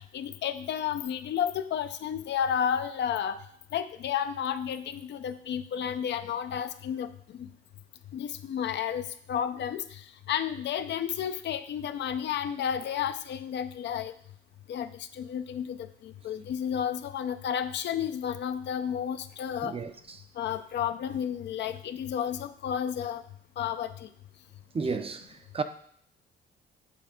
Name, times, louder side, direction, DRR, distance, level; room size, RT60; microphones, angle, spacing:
voice 1, 0.0-3.4 3.7-7.1 7.4-7.5 8.1-9.8 10.3-14.1 14.7-14.9 15.2-15.8 16.0-19.7 20.4-23.2 23.6-24.1 24.9-25.0, left 9 dB, 65° left, 0.5 m, -31 dB
voice 2, 19.6-20.2 24.7-25.6, right 4 dB, 30° right, 0.5 m, -33 dB
7.6 x 3.2 x 5.1 m
cardioid pair, 90°, 20 cm